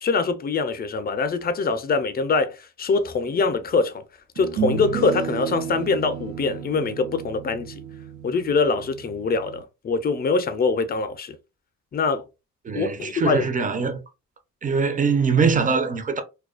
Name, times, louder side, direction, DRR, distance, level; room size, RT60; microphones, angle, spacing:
voice 1, 0.0-4.0 4.4-7.8 8.2-11.4 11.9-12.2 12.7-13.4, left 4 dB, 30° left, 0.5 m, -24 dB
sound 1, 3.3-3.4 4.4-9.6, right 7 dB, 80° right, 0.6 m, -32 dB
voice 2, 12.6-14.0 14.6-16.2, right 5 dB, 25° right, 0.6 m, -22 dB
2.3 x 2.2 x 2.4 m
cardioid pair, 90°, 30 cm